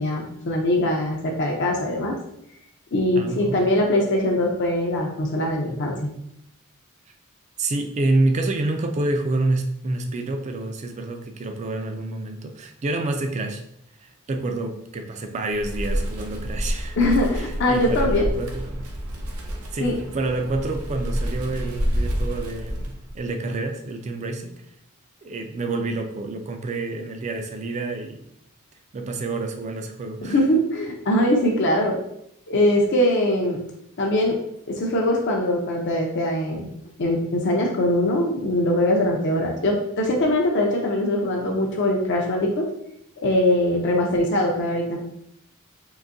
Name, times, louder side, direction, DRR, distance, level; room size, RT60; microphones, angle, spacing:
voice 1, 0.0-2.2 2.9-6.1 17.0-18.3 19.8-19.9 30.3-32.0 32.5-33.6 34.0-34.4 34.7-36.7 37.0-42.7 43.2-45.0, left 1 dB, 55° left, 0 dB, 0.5 m, -22 dB
voice 2, 3.2-3.6 7.6-13.6 14.0-17.0 17.3-18.9 19.7-24.5 25.2-28.3 28.9-30.4, right 2 dB, 30° right, 6 dB, 0.3 m, -28 dB
Wind, 15.5-23.2, equal, 85° right, 0.6 m, -28 dB
3.8 x 2.6 x 2.5 m, 0.75 s
head